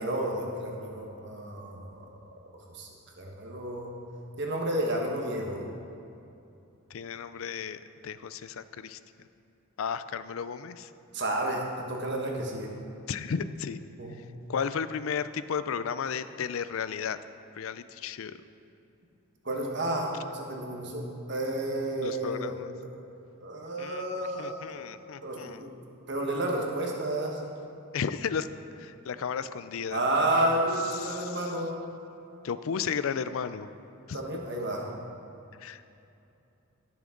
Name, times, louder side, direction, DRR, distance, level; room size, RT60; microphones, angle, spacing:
voice 1, 0.0-2.0 2.7-2.9 3.2-3.9 4.4-5.6 11.1-12.7 14.0-14.2 19.4-22.6 22.9-23.0 23.4-24.9 25.2-25.7 26.1-27.4 29.9-31.7 34.1-35.0, right 1 dB, 55° right, 0 dB, 1.5 m, -31 dB
voice 2, 6.9-9.3 9.8-10.9 13.1-13.8 14.5-17.2 17.5-18.3 22.0-22.7 23.8-25.6 27.9-28.5 28.8-30.0 30.9-31.5 32.4-33.7 34.1-34.2 35.6-35.8, left 6 dB, 70° left, 13 dB, 0.4 m, -34 dB
16.5 x 7.1 x 3.9 m, 2.7 s
head